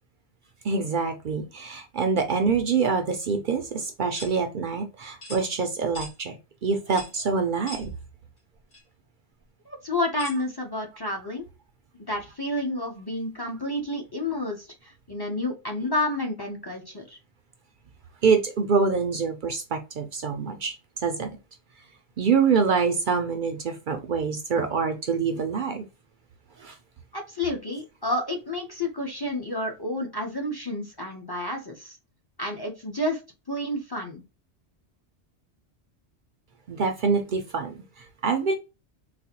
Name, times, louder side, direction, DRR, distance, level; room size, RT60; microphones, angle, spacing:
voice 1, 0.6-6.4 6.6-7.9 18.2-20.7 21.0-21.3 22.2-25.8 26.6-26.8 36.7-38.5, right 5 dB, 60° right, 6 dB, 0.6 m, -25 dB
sound 1, 4.1-4.3 5.2-5.4 5.9-6.1 6.9-7.2 7.7-7.9 8.7-8.8 10.2-10.4, left 1 dB, 70° left, 1.8 m, -40 dB
voice 2, 9.7-11.5 12.1-17.2 27.1-32.0 32.4-33.2 33.5-34.2, left 1 dB, 25° left, 1 dB, 0.6 m, -30 dB
4.0 x 2.1 x 2.8 m, 0.28 s
omnidirectional pair, 1.2 m